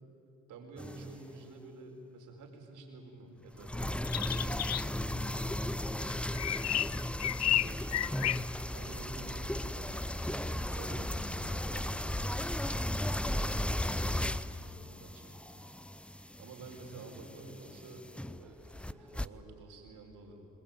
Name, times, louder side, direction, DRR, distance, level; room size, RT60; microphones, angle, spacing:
voice 1, 0.5-3.8 4.1-6.8 7.2-8.3 8.7-10.3 10.6-15.7 16.4-20.5, right 3 dB, 85° right, 3 dB, 4.9 m, -51 dB
sound 1, 0.8-1.3 3.5-19.3, left 1 dB, 5° left, 0.6 m, -36 dB
sound 2, 4.1-4.8 6.1-8.4, left 12 dB, 60° left, 0.6 m, -31 dB
28.5 x 21.0 x 9.1 m, 2.7 s
cardioid pair, 90°, 30 cm